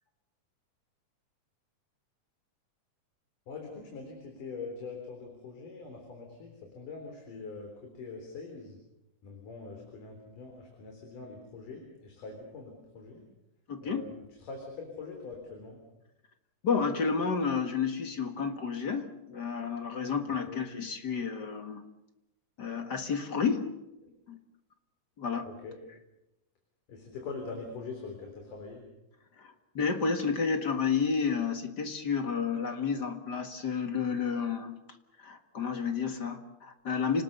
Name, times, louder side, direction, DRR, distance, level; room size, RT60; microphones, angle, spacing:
voice 1, 3.5-8.8 9.2-13.2 13.8-15.8 20.5-20.6 24.0-24.1 25.4-25.8 26.9-28.8, left 4 dB, 85° left, 2 dB, 5.3 m, -43 dB
voice 2, 13.7-14.0 16.6-21.8 22.6-23.7 24.3-24.4 25.2-25.5 29.4-34.8 35.2-37.2, left 5 dB, 40° left, 7 dB, 1.8 m, -31 dB
29.5 x 19.5 x 6.8 m, 0.92 s
omnidirectional pair, 3.6 m